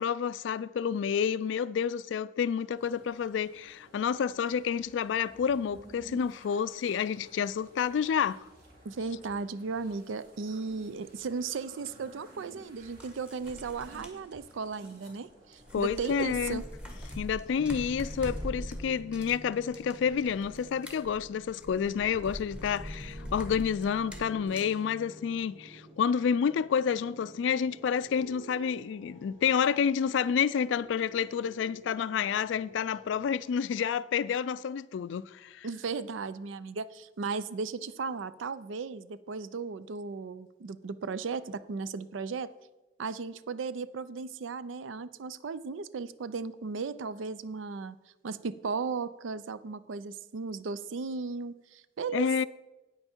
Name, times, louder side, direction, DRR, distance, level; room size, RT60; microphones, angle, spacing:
voice 1, 0.0-8.4 15.7-16.6 17.2-35.7 52.1-52.4, left 7 dB, 75° left, 0.3 m, -29 dB
sound 1, 2.8-18.5, right 1 dB, 50° right, 3.1 m, -55 dB
voice 2, 8.8-16.6 35.6-42.5 43.0-48.0 48.2-52.4, right 4 dB, 90° right, 0.5 m, -36 dB
sound 2, 11.9-12.0 12.8-15.3 15.5-24.8, equal, 5° right, 1.2 m, -43 dB
sound 3, 17.6-33.2, equal, 30° right, 1.8 m, -50 dB
9.0 x 8.9 x 4.4 m
head